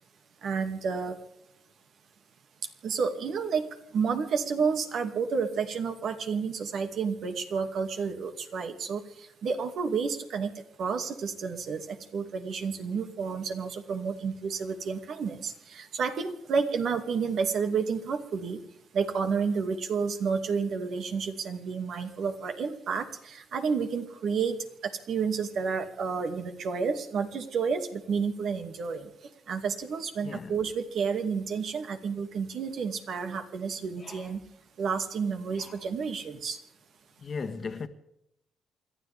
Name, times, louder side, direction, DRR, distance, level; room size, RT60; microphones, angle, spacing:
voice 1, 0.4-1.2 2.8-18.6 18.9-24.6 24.8-34.4 34.8-36.6, right 5 dB, 65° right, 2.4 m, -30 dB
voice 2, 37.2-37.9, left 5 dB, 45° left, 1.5 m, -37 dB
28.5 x 13.0 x 3.6 m
cardioid pair, 90°, 0 cm